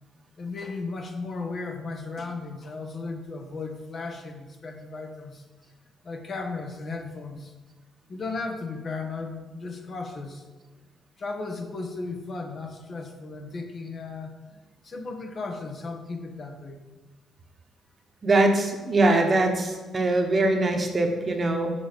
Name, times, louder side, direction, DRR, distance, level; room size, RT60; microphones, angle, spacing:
voice 1, 0.4-5.4 6.0-7.5 8.1-10.5 11.2-14.3 14.8-16.8, left 3 dB, 45° left, 4 dB, 1.3 m, -35 dB
voice 2, 18.2-21.7, right 2 dB, 35° right, 4 dB, 1.3 m, -22 dB
7.0 x 5.1 x 7.0 m, 1.3 s
cardioid pair, 90°, 0 cm